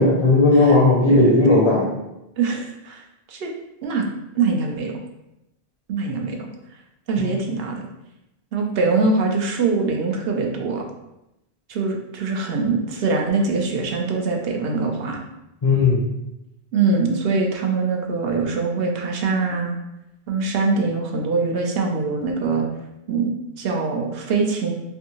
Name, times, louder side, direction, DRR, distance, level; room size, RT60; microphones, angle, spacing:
voice 1, 0.0-1.9 15.6-16.0, left 2 dB, 40° left, -4 dB, 0.6 m, -15 dB
voice 2, 1.1-1.6 2.4-3.5 3.8-4.1 4.3-4.9 5.9-6.5 7.1-7.9 8.5-10.8 11.7-15.2 16.7-19.8 20.3-22.7 23.1-24.7, right 4 dB, 70° right, 2 dB, 0.8 m, -23 dB
3.4 x 2.6 x 2.8 m, 0.90 s
omnidirectional pair, 1.1 m